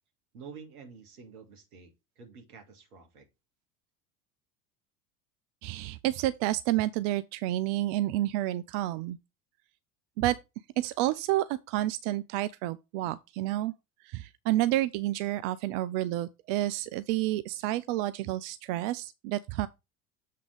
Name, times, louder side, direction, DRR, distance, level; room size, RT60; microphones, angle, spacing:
voice 1, 0.3-3.3, right 5 dB, 75° right, 2.0 m, -49 dB
voice 2, 5.6-9.2 10.2-10.4 10.8-13.7 14.0-19.7, right 15 dB, 50° right, 0.5 m, -30 dB
7.5 x 3.6 x 4.9 m
figure-of-eight pair, 70°, 45 cm